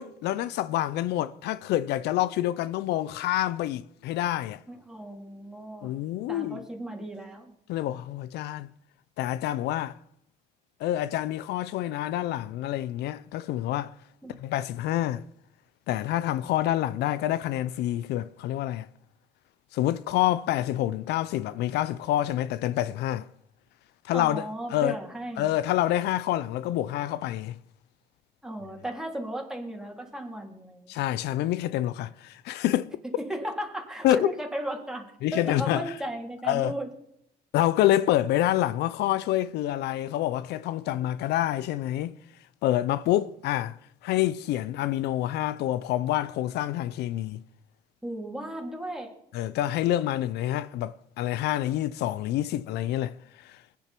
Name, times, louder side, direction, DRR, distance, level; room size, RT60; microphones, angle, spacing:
voice 1, 0.0-4.6 5.8-6.6 7.7-8.7 9.2-10.0 10.8-13.9 14.4-15.2 15.9-18.9 19.7-23.3 24.1-24.4 24.7-24.9 25.4-27.5 30.9-32.9 34.0-34.3 35.2-35.8 36.4-36.7 37.5-42.2 42.6-43.8 44.0-47.4 49.3-53.6, left 13 dB, 80° left, 0.5 m, -27 dB
voice 2, 4.7-5.9 6.3-7.5 14.2-14.3 24.1-25.5 28.4-31.0 33.2-35.1 35.3-36.9 48.0-49.1, right 1 dB, 5° right, 3.5 m, -35 dB
21.5 x 10.5 x 4.5 m
cardioid pair, 110°, 17 cm